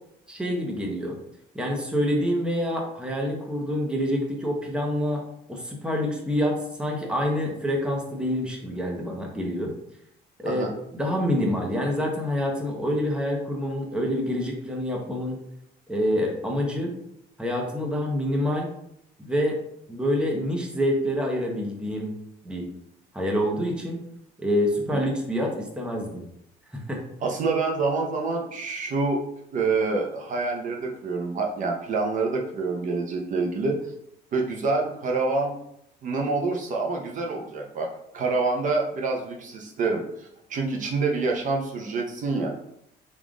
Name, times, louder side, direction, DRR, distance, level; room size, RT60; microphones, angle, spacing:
voice 1, 0.3-1.2 1.5-5.2 5.5-9.7 10.4-15.4 15.9-16.9 17.4-18.7 19.2-19.6 19.9-22.1 22.4-22.7 23.1-24.0 24.4-26.2 26.7-27.0, equal, 5° right, 0 dB, 0.8 m, -27 dB
voice 2, 27.2-29.2 29.5-33.8 34.3-35.6 36.0-37.9 38.1-42.5, right 3 dB, 50° right, 1 dB, 0.6 m, -27 dB
3.6 x 2.4 x 3.6 m, 0.75 s
cardioid pair, 110°, 17 cm